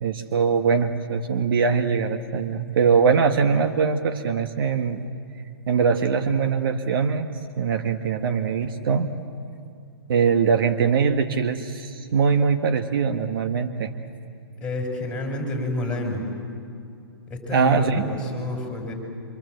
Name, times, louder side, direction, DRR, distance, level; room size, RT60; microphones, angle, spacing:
voice 1, 0.0-5.1 5.7-9.1 10.1-13.9 17.5-18.0, right 6 dB, 60° right, 7 dB, 1.5 m, -22 dB
voice 2, 14.6-16.3 17.3-18.9, left 1 dB, 5° left, 1 dB, 5.7 m, -29 dB
26.0 x 25.5 x 8.0 m, 2.4 s
hypercardioid pair, 140°, 13 cm